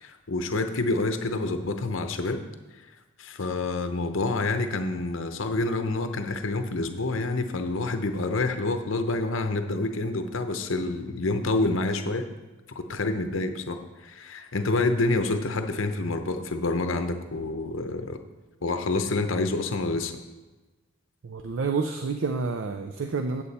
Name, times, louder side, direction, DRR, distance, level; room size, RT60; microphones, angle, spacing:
voice 1, 0.0-2.4 3.2-12.2 12.7-18.2 18.6-20.1, left 2 dB, 65° left, 7 dB, 0.7 m, -28 dB
voice 2, 21.2-23.4, right 4 dB, 65° right, 6 dB, 0.5 m, -29 dB
8.5 x 8.4 x 4.2 m, 1.2 s
head